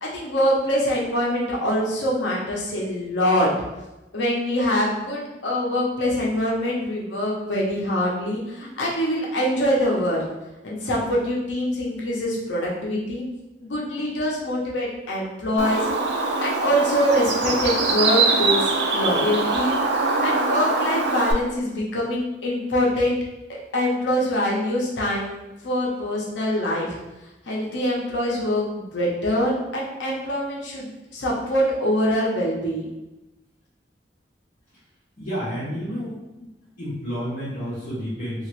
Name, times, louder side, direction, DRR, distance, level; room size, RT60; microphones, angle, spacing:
voice 1, 0.0-3.5 4.1-10.2 10.6-13.2 13.6-15.8 16.1-19.8 20.2-23.2 23.7-27.0 27.5-32.9, equal, 85° left, -3 dB, 0.7 m, -24 dB
Bird, 15.6-21.3, right 3 dB, 70° right, 0.4 m, -23 dB
voice 2, 35.2-36.5 36.8-38.5, equal, 45° left, -12 dB, 1.1 m, -30 dB
2.8 x 2.4 x 3.0 m, 0.99 s
head